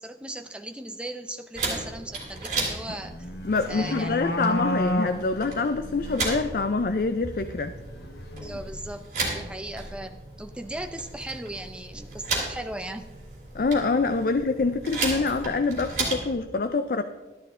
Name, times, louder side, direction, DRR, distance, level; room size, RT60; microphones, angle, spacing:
voice 1, 0.0-3.3 3.7-4.2 8.4-13.1, right 1 dB, 5° right, 6 dB, 0.6 m, -37 dB
sound 1, 1.5-16.3, right 3 dB, 45° right, 3.1 m, -35 dB
sound 2, 2.9-6.3 7.4-9.0, left 1 dB, 70° left, 1.0 m, -32 dB
voice 2, 3.4-7.7 13.5-17.0, left 3 dB, 55° left, 10 dB, 0.4 m, -25 dB
13.0 x 11.5 x 3.7 m, 1.2 s
head